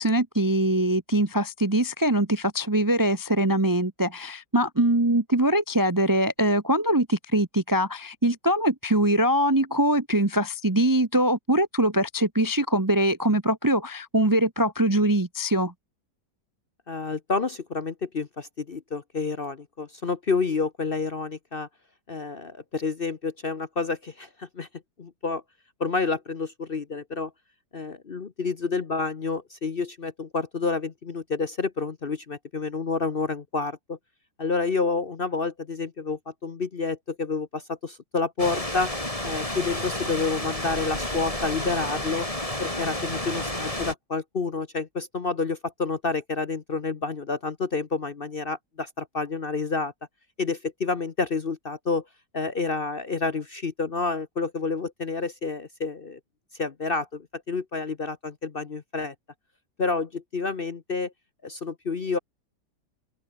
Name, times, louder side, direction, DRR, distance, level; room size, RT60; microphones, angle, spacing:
voice 1, 0.0-15.7, right 1 dB, 15° right, 0.8 m, -23 dB
voice 2, 16.9-21.7 22.1-24.7 25.0-25.4 25.8-27.3 27.7-34.0 34.4-38.9 39.2-42.3 42.6-49.9 50.4-52.0 52.3-56.2 56.6-59.1 59.8-61.1 61.4-62.2, left 4 dB, 40° left, 1.0 m, -29 dB
sound 1, 38.4-43.9, left 1 dB, 20° left, 5.1 m, -31 dB
open air
omnidirectional pair, 1.8 m